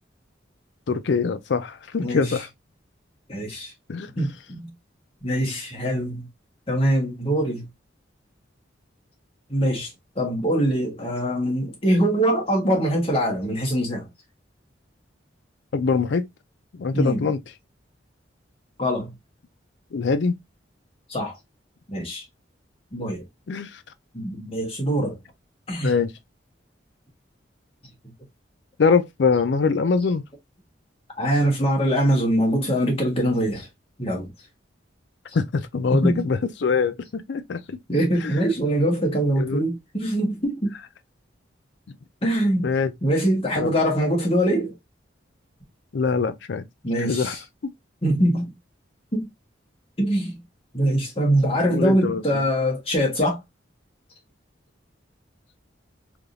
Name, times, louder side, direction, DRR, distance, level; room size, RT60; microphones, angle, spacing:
voice 1, 0.9-2.5 3.9-4.1 15.7-16.3 16.7-17.4 19.9-20.4 23.5-23.8 25.8-26.1 28.8-30.2 35.3-37.8 38.2-38.4 39.4-39.7 42.6-42.9 43.6-43.8 45.9-46.7 47.0-47.4 51.7-52.5, left 5 dB, 70° left, 0.4 m, -23 dB
voice 2, 3.3-3.7 4.2-4.7 5.2-6.3 6.7-7.7 9.5-9.9 10.2-14.1 16.9-17.2 18.8-19.1 21.1-21.3 21.9-22.2 22.9-23.2 24.1-25.1 25.7-25.9 31.2-33.7 34.0-34.3 36.0-36.2 37.9-40.7 42.2-42.6 43.0-44.7 46.8-47.4 48.0-48.5 49.1-49.3 50.0-50.4 50.7-53.4, equal, 30° left, 1.3 m, -23 dB
3.5 x 2.8 x 2.4 m
head